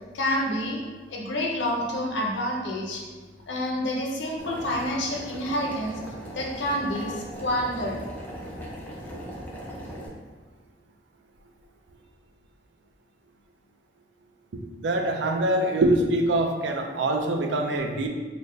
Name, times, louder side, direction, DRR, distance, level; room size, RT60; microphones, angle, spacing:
voice 1, 0.1-0.8 1.1-3.0 3.5-6.0 6.3-8.0, left 1 dB, 85° left, 0 dB, 0.7 m, -28 dB
Boiling, 4.4-10.1, equal, 10° left, 0.5 m, -39 dB
voice 2, 14.5-18.1, right 1 dB, 80° right, 3 dB, 0.4 m, -24 dB
3.9 x 2.2 x 3.3 m, 1.4 s
head